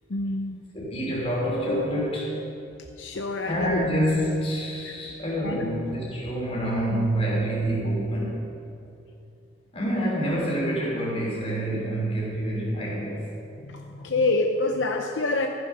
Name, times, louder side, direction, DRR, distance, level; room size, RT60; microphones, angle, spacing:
voice 1, 0.1-0.6 1.7-1.8 2.6-2.7 3.0-3.9 4.8-4.9 5.4-5.7 11.7-11.8 13.6-15.5, left 3 dB, 70° left, 3 dB, 0.7 m, -27 dB
voice 2, 0.7-2.3 3.4-8.5 9.7-13.2, right 1 dB, 30° left, -4 dB, 3.4 m, -27 dB
14.5 x 7.7 x 5.6 m, 2.7 s
head